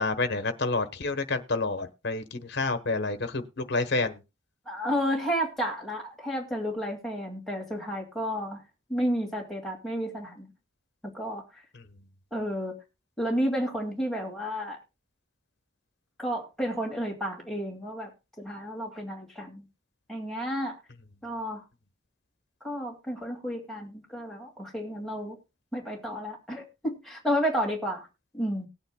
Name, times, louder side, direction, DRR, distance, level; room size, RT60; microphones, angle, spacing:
voice 1, 0.0-4.2, left 3 dB, 55° left, 1.1 m, -29 dB
voice 2, 4.7-8.6 8.9-10.5 11.0-11.6 12.3-12.8 13.2-14.8 16.2-18.1 18.4-19.7 20.1-20.8 21.2-21.6 22.6-25.4 25.7-28.1 28.3-28.7, equal, ahead, 2.2 m, -31 dB
19.5 x 8.9 x 2.2 m
head